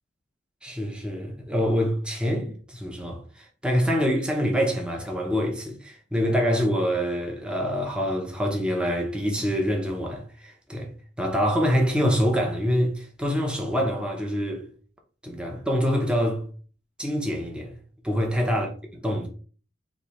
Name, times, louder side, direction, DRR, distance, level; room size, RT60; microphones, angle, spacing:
voice 1, 0.6-10.9 11.2-14.7 15.2-16.5 17.0-17.8 18.0-18.7 19.0-19.3, equal, 5° right, 0.6 m, -25 dB
3.1 x 2.7 x 4.0 m
head